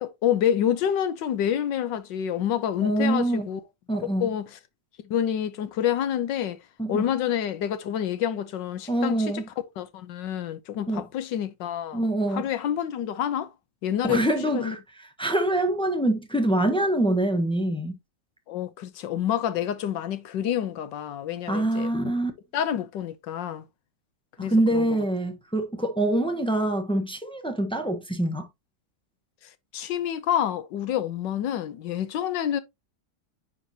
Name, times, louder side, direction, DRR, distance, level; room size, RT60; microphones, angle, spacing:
voice 1, 0.0-3.6 4.2-4.6 5.0-6.6 6.9-9.2 9.8-12.0 12.3-13.5 13.8-14.8 18.5-22.1 22.5-23.6 24.4-24.9 29.7-32.6, left 10 dB, 90° left, 1.5 m, -28 dB
voice 2, 2.8-3.5 3.9-4.3 6.8-7.0 8.9-9.4 10.9-11.0 11.9-12.4 14.0-14.8 15.2-18.0 21.5-22.3 24.4-28.5, right 1 dB, 5° left, 0.5 m, -25 dB
9.8 x 4.5 x 2.8 m
omnidirectional pair, 1.9 m